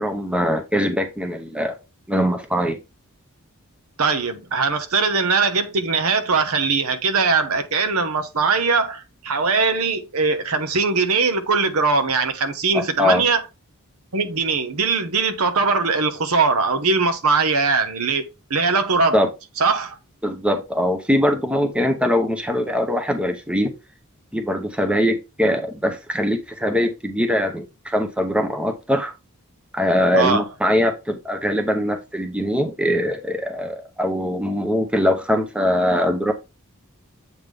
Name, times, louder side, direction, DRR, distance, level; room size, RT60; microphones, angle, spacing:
voice 1, 0.0-1.8 2.1-2.8 12.7-13.2 19.1-19.3 20.2-23.7 24.3-29.1 29.7-36.3, equal, 5° right, 0.7 m, -22 dB
voice 2, 4.0-13.4 14.1-19.2 19.6-20.0 30.1-30.4, right 4 dB, 75° right, 1.0 m, -21 dB
8.0 x 3.6 x 3.4 m
head